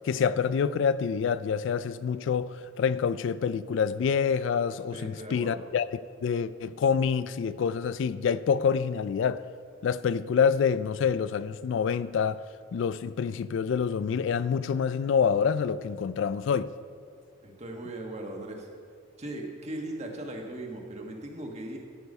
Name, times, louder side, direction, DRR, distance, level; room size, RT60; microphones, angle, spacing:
voice 1, 0.0-9.4 9.8-12.4 12.7-16.7, left 6 dB, 65° left, 0.3 m, -27 dB
voice 2, 4.9-5.6 17.4-18.7 19.2-21.8, right 1 dB, 35° right, 1.5 m, -38 dB
13.5 x 6.9 x 5.5 m
head